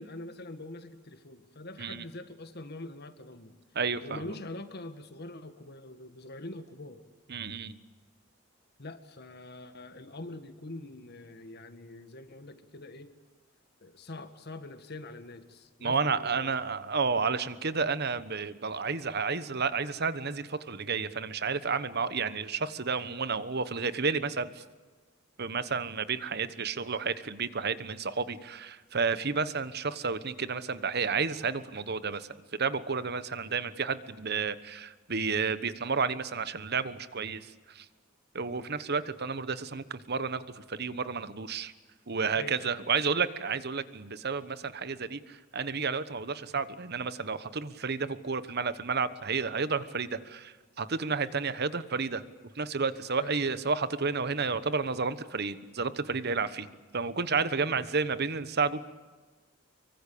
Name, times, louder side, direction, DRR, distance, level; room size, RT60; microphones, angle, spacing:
voice 1, 0.0-3.6 4.0-7.0 8.8-13.1 13.8-16.6 38.5-38.7 42.3-42.8 53.2-53.4, left 2 dB, 55° left, 9 dB, 1.9 m, -44 dB
voice 2, 3.7-4.2 7.3-7.8 15.8-24.6 25.4-32.3 32.6-37.8 38.3-41.7 42.1-52.2 52.5-58.9, right 5 dB, 55° right, 14 dB, 1.2 m, -31 dB
25.0 x 24.0 x 8.6 m, 1.4 s
head